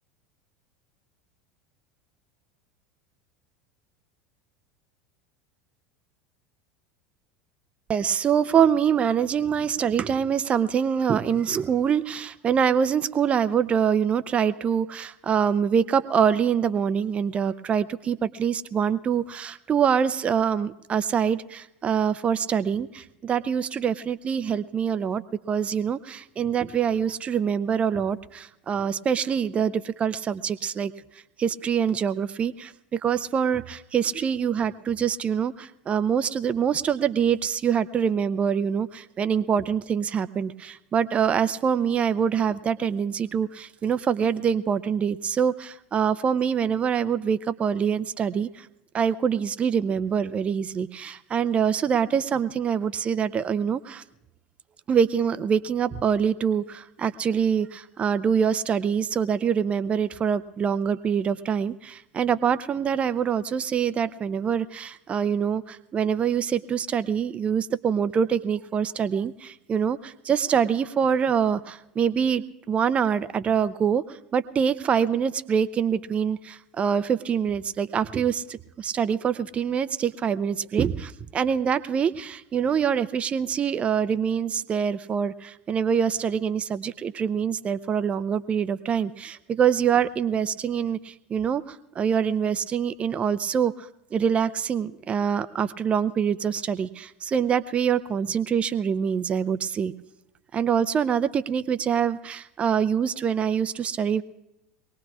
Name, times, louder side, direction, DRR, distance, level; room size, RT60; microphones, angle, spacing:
voice 1, 7.9-30.9 31.4-48.7 48.9-54.0 54.9-99.9 100.5-104.2, right 7 dB, 30° right, 13 dB, 0.5 m, -25 dB
23.0 x 19.0 x 2.4 m, 0.87 s
hypercardioid pair, 80°, 4 cm